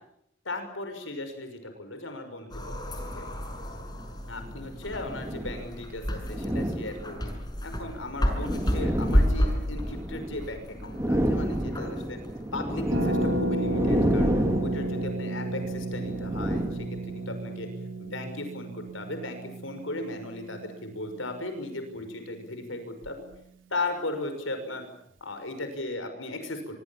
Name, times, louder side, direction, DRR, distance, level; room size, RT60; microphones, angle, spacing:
voice 1, 0.4-3.3 4.3-7.3 7.6-12.2 12.5-14.3 14.6-17.7 18.0-23.2 23.7-24.8 25.2-26.8, left 2 dB, 75° left, 7 dB, 6.1 m, -36 dB
sound 1, 2.5-13.2, equal, 20° left, 6.3 m, -31 dB
sound 2, 3.0-3.2 4.2-5.7 6.2-7.4 8.0-10.5 10.7-17.3, equal, 15° right, 2.3 m, -30 dB
Harp, 12.9-22.5 22.8-22.9 23.0-23.4, right 1 dB, 70° right, 4.4 m, -34 dB
25.5 x 24.5 x 7.4 m, 0.75 s
head